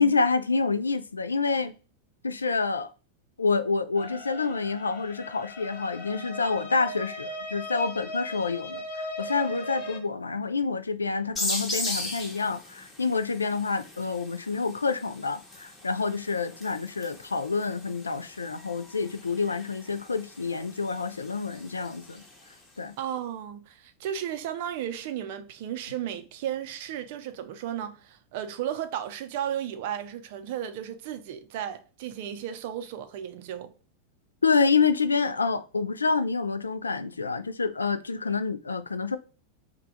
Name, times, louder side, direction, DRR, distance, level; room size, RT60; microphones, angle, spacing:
voice 1, 0.0-1.7 2.2-2.9 3.4-22.2 22.8-22.9 34.4-39.2, left 4 dB, 75° left, 0.3 m, -27 dB
sound 1, 4.0-10.0, left 1 dB, 50° left, 0.9 m, -38 dB
sound 2, 11.4-22.7, left 1 dB, 15° left, 1.0 m, -39 dB
voice 2, 23.0-33.7, right 10 dB, 50° right, 0.4 m, -34 dB
3.3 x 2.2 x 3.7 m
figure-of-eight pair, 90°, 0 cm